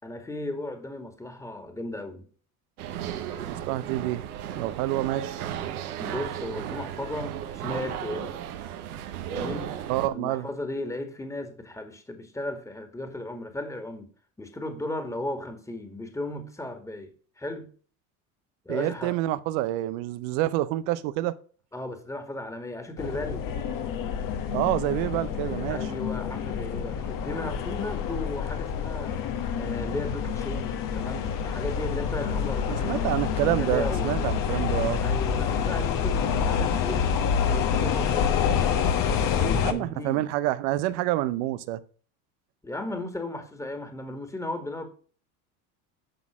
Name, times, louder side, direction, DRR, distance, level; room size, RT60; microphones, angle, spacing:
voice 1, 0.0-2.3 6.0-8.3 9.3-9.7 10.1-14.1 14.4-17.7 18.7-19.2 21.7-23.4 25.7-29.2 29.6-33.1 33.4-34.1 35.0-38.9 39.3-40.3 42.6-44.9, left 1 dB, 5° left, 1.9 m, -35 dB
sound 1, 2.8-10.1, right 10 dB, 85° right, 1.2 m, -35 dB
voice 2, 3.5-4.2 4.5-5.3 9.9-10.5 18.7-21.4 24.5-25.9 32.7-35.0 39.6-41.8, right 15 dB, 70° right, 0.8 m, -27 dB
sound 2, 23.0-39.7, left 7 dB, 50° left, 1.4 m, -27 dB
11.5 x 4.0 x 6.1 m
hypercardioid pair, 85°, 43 cm